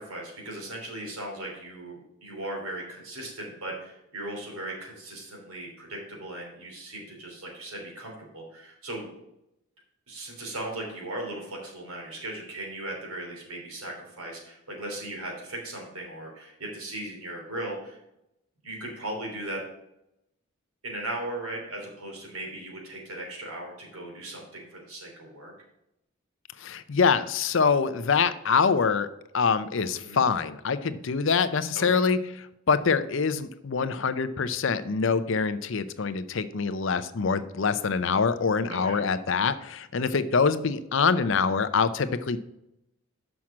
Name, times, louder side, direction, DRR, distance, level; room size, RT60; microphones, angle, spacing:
voice 1, 0.0-9.1 10.1-18.0 18.6-19.6 20.8-25.5 30.0-30.2 31.7-32.0 38.7-39.0, right 1 dB, 85° right, 0 dB, 3.1 m, -37 dB
voice 2, 26.6-29.1 29.3-32.2 32.7-42.4, left 5 dB, 60° left, 13 dB, 0.5 m, -25 dB
6.3 x 5.9 x 7.3 m, 0.85 s
head